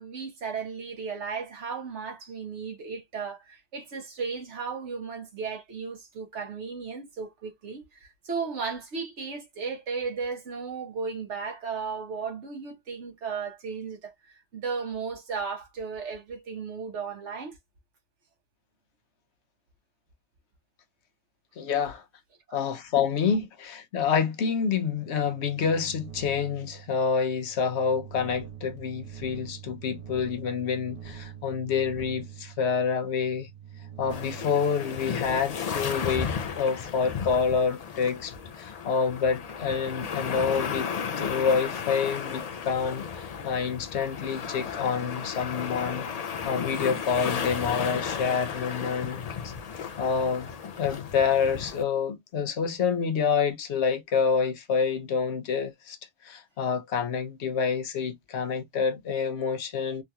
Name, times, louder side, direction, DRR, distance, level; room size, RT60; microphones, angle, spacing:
voice 1, 0.0-17.6, right 5 dB, 80° right, 1.4 m, -35 dB
voice 2, 21.6-22.0 22.5-33.5 34.0-40.9 41.2-46.1 46.4-49.5 50.0-50.5 50.8-56.0 56.2-60.0, left 6 dB, 70° left, 1.0 m, -27 dB
sound 1, 24.9-35.5, right 8 dB, 35° right, 0.8 m, -45 dB
sound 2, 34.1-51.8, left 6 dB, 50° left, 0.5 m, -34 dB
3.7 x 2.8 x 2.3 m
omnidirectional pair, 1.2 m